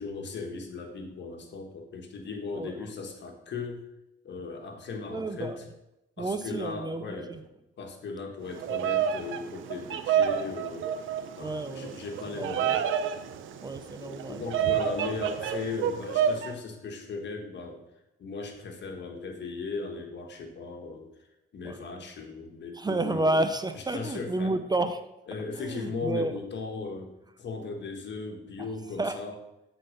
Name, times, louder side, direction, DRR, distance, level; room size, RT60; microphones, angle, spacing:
voice 1, 0.0-3.8 4.2-5.6 6.2-7.4 7.8-10.9 11.4-12.8 14.0-17.8 18.2-21.1 21.5-23.4 23.9-24.5 25.3-29.4, left 4 dB, 60° left, 3 dB, 1.4 m, -37 dB
voice 2, 5.1-5.6 6.2-7.4 11.4-11.9 12.3-12.8 13.6-14.7 21.6-21.8 22.7-25.1 25.6-26.4 28.6-28.7 29.0-29.2, right 2 dB, 20° right, 10 dB, 0.5 m, -31 dB
Bird vocalization bird call bird song, 8.5-16.5, right 8 dB, 75° right, 0.6 m, -29 dB
7.8 x 4.0 x 5.1 m, 0.92 s
cardioid pair, 85°, 20 cm